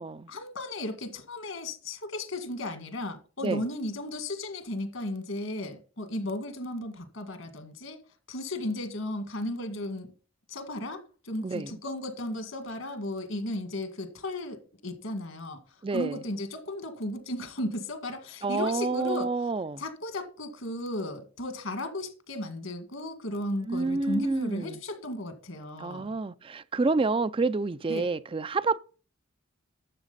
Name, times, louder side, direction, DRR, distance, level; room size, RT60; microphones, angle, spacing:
voice 1, 0.3-8.0 8.3-10.1 10.5-19.3 19.8-26.2 27.9-28.1, left 1 dB, 70° left, 2.0 m, -35 dB
voice 2, 11.4-11.8 15.8-16.2 18.4-19.8 23.7-24.8 25.8-28.8, right 3 dB, 25° right, 0.4 m, -28 dB
12.0 x 7.3 x 4.0 m
head